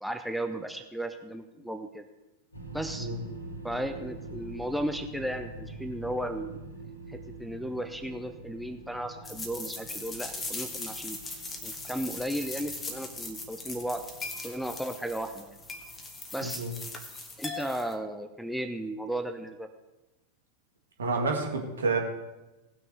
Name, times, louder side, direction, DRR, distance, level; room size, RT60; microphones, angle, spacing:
voice 1, 0.0-2.1 2.7-3.1 3.6-6.6 7.1-11.2 11.6-14.0 14.4-15.6 16.3-16.6 17.4-19.7, right 1 dB, ahead, 0.7 m, -35 dB
sound 1, 2.5-16.5, right 2 dB, 80° left, 2.1 m, -46 dB
sound 2, 9.2-17.9, left 3 dB, 15° left, 1.4 m, -40 dB
voice 2, 16.4-16.7 21.0-22.0, right 3 dB, 70° right, 2.1 m, -29 dB
17.5 x 6.3 x 4.6 m
figure-of-eight pair, 90°, 0 cm